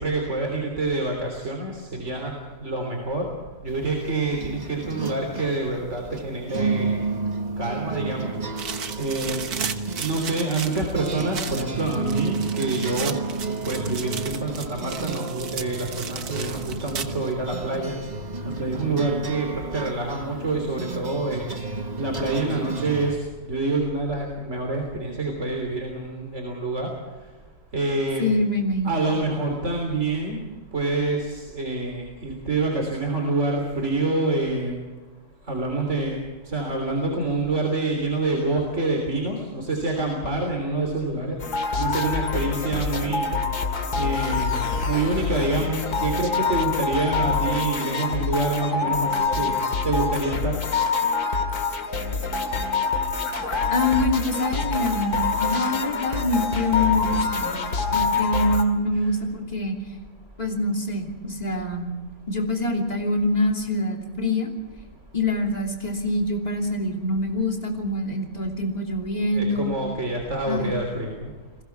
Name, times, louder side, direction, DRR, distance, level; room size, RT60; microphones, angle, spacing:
voice 1, 0.0-2.3 2.6-3.2 3.6-7.0 7.6-8.3 9.0-9.5 10.0-17.9 18.5-21.5 22.0-26.9 27.7-28.3 28.8-30.4 30.7-34.8 35.5-36.2 36.5-41.4 41.8-43.3 44.0-49.6 49.8-50.6 57.9-58.1 58.9-59.1 69.3-71.3, right 2 dB, 50° right, 2 dB, 3.7 m, -27 dB
sound 1, 3.7-23.2, right 4 dB, 30° right, 1.3 m, -32 dB
sound 2, 8.6-17.3, right 7 dB, 80° right, 1.8 m, -35 dB
voice 2, 28.2-29.0 53.7-57.6 57.9-59.7 60.4-61.9 62.3-64.5 65.1-69.7 70.5-70.7, left 1 dB, 25° left, 1 dB, 3.1 m, -25 dB
sound 3, 41.4-58.6, left 4 dB, 80° left, 2.7 m, -26 dB
30.0 x 21.5 x 4.7 m, 1.3 s
omnidirectional pair, 1.6 m